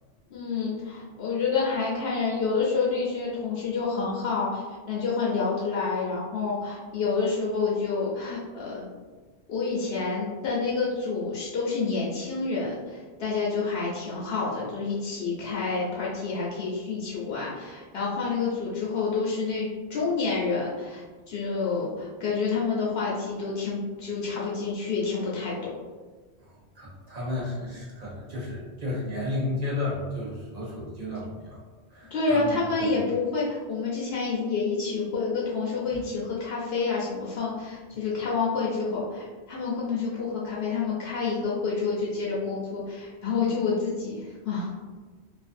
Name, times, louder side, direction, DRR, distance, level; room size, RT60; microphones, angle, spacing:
voice 1, 0.3-8.9 9.5-25.5 32.1-44.7, left 4 dB, 70° left, -5 dB, 0.8 m, -28 dB
voice 2, 26.4-31.6 31.9-32.9, left 2 dB, 45° right, -5 dB, 0.7 m, -33 dB
2.5 x 2.3 x 2.5 m, 1.3 s
omnidirectional pair, 1.1 m